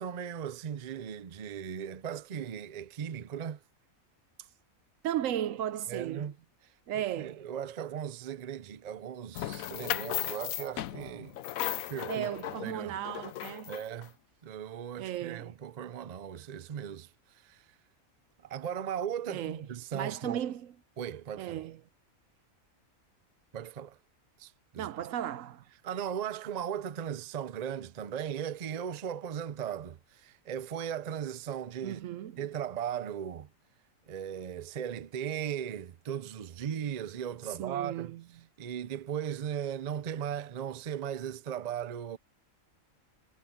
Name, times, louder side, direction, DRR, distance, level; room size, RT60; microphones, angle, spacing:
voice 1, 0.0-3.6 5.9-6.4 6.9-11.4 11.9-12.3 12.6-12.9 13.7-14.1 14.4-17.7 18.4-20.5 21.0-21.7 23.5-24.0 24.4-24.9 25.8-32.0 32.4-33.5 34.1-38.1 38.6-42.2, right 9 dB, 45° right, 0.5 m, -37 dB
voice 2, 5.0-6.3 6.9-7.5 12.1-13.7 15.0-15.5 19.3-19.6 19.9-20.7 21.4-21.8 24.7-25.6 31.8-32.4 37.5-38.2, right 11 dB, 75° right, 1.0 m, -35 dB
sound 1, 9.4-14.1, left 13 dB, 85° left, 1.1 m, -36 dB
omnidirectional pair, 1.4 m